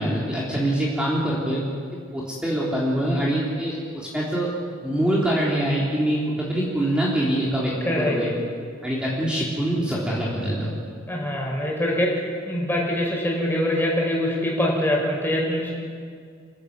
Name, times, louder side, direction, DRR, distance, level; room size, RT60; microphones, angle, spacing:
voice 1, 0.0-1.6 2.1-4.6 4.8-8.3 8.8-10.7, right 1 dB, 5° right, -6 dB, 3.6 m, -24 dB
voice 2, 7.8-8.3 11.1-12.1 12.4-15.7, left 1 dB, 10° left, -2 dB, 6.3 m, -24 dB
28.5 x 15.0 x 8.6 m, 2.1 s
head